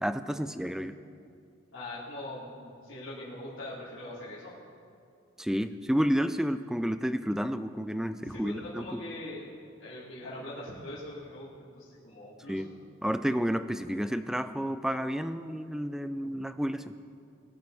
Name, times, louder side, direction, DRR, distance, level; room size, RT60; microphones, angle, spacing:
voice 1, 0.0-0.9 5.4-9.0 12.5-12.7 13.0-16.9, equal, 5° right, 11 dB, 0.4 m, -30 dB
voice 2, 1.7-4.5 8.2-9.5 9.8-11.5 11.7-12.6, left 1 dB, 75° left, -11 dB, 3.3 m, -42 dB
21.5 x 7.7 x 5.6 m, 2.4 s
head